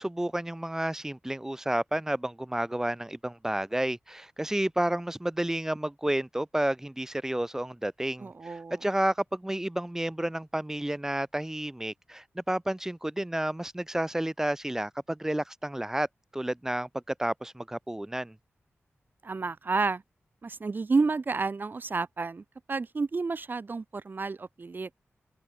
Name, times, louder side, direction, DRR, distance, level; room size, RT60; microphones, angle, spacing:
voice 1, 0.0-16.1 16.3-16.9 17.2-18.3, right 1 dB, 10° right, 1.4 m, -31 dB
voice 2, 8.2-8.8 19.2-20.0 20.4-24.9, right 4 dB, 45° right, 3.7 m, -30 dB
wide cardioid pair, 115°, 5 cm